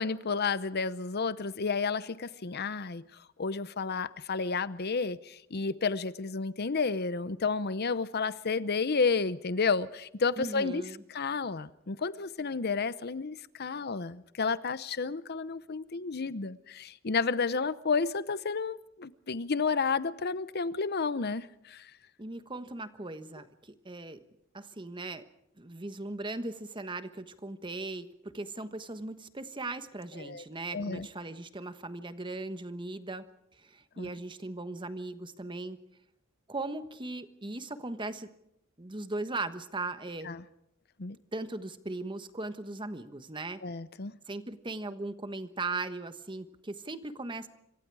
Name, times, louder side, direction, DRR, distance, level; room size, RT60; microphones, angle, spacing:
voice 1, 0.0-3.0 3.4-10.8 11.1-21.9 30.2-30.4 30.7-31.1 34.0-34.1 40.2-40.4 41.0-41.2 43.6-44.2, left 4 dB, 50° left, 0.8 m, -31 dB
voice 2, 10.4-11.0 22.2-24.2 24.5-25.2 25.6-33.3 33.5-35.8 36.5-38.3 38.8-40.3 41.3-43.6 44.3-47.5, right 2 dB, 25° right, 1.3 m, -38 dB
26.5 x 24.5 x 4.8 m
head